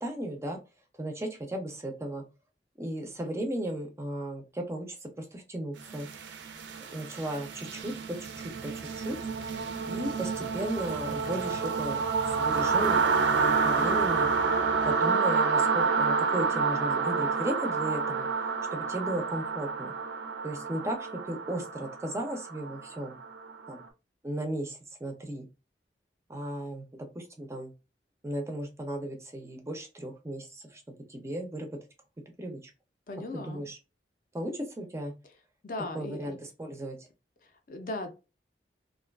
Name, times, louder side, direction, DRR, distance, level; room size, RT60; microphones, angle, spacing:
voice 1, 0.0-0.6 1.0-2.2 2.8-6.1 6.9-9.2 9.9-12.0 12.4-14.3 14.8-18.3 18.7-19.9 20.4-23.2 23.7-23.8 24.2-25.5 26.3-27.7 28.2-30.8 31.1-31.7 32.4-32.7 33.3-33.8 34.3-35.1 35.9-37.0, right 1 dB, 15° right, 0.4 m, -35 dB
sound 1, 5.9-23.7, right 5 dB, 90° right, 0.4 m, -29 dB
voice 2, 33.1-33.6 35.6-36.4 37.7-38.2, left 2 dB, 50° left, 0.4 m, -37 dB
2.5 x 2.2 x 2.2 m
head